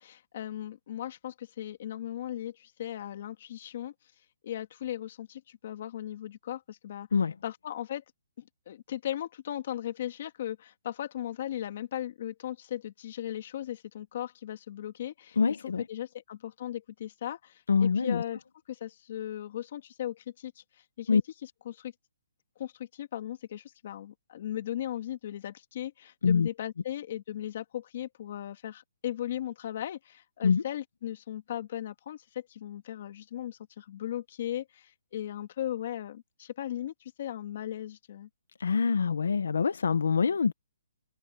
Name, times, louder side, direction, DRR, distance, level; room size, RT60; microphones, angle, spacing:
voice 1, 0.0-3.9 4.4-7.1 7.4-8.0 8.4-15.4 15.6-18.4 18.7-20.6 21.0-21.2 21.7-21.9 22.6-38.3, left 11 dB, 40° left, 2.3 m, -37 dB
voice 2, 15.4-15.8 17.7-18.2 21.1-21.2 26.2-26.5 30.4-30.6 38.6-40.5, left 5 dB, 80° left, 0.9 m, -25 dB
hypercardioid pair, 175°, 0 cm